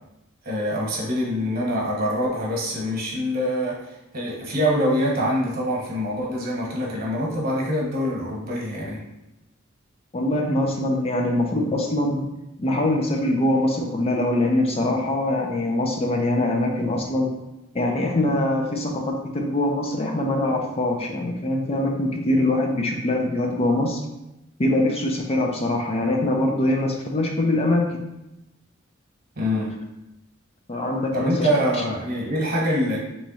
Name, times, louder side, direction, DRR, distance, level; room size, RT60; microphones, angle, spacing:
voice 1, 0.4-9.0 29.4-29.8 31.1-33.0, equal, 50° right, -2 dB, 1.1 m, -25 dB
voice 2, 10.1-12.2 12.6-17.3 17.7-24.0 24.6-28.0 30.7-31.5, left 1 dB, 30° left, 1 dB, 0.5 m, -23 dB
3.5 x 3.1 x 4.1 m, 0.93 s
head